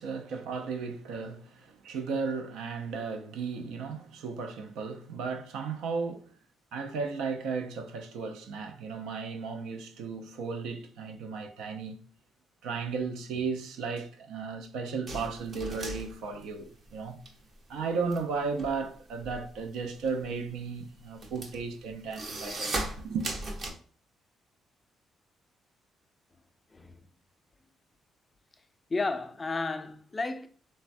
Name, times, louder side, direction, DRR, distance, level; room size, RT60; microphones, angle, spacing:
voice 1, 0.0-6.3 6.7-12.0 12.6-17.2 17.7-22.8 23.0-23.3, right 5 dB, 85° right, 0.4 m, -35 dB
sound 1, 15.1-17.3 17.6-23.7, right 2 dB, 45° right, 0.6 m, -37 dB
voice 2, 28.9-30.5, left 3 dB, 25° left, 0.3 m, -32 dB
3.3 x 2.1 x 2.5 m
cardioid pair, 90°, 0 cm